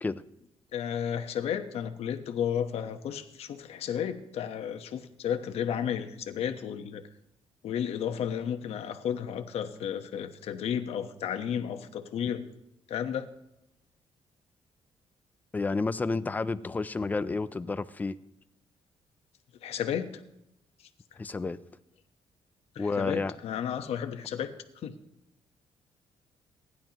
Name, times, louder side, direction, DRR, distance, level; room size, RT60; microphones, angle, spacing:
voice 1, 0.7-7.0 7.6-12.5 12.9-13.3 19.6-20.1 22.7-24.5 24.8-24.9, left 8 dB, 70° left, 7 dB, 1.1 m, -33 dB
voice 2, 15.5-18.2 21.2-21.6 22.8-23.4, left 3 dB, 15° left, 14 dB, 0.4 m, -30 dB
26.5 x 11.0 x 3.0 m, 0.84 s
cardioid pair, 175°, 11 cm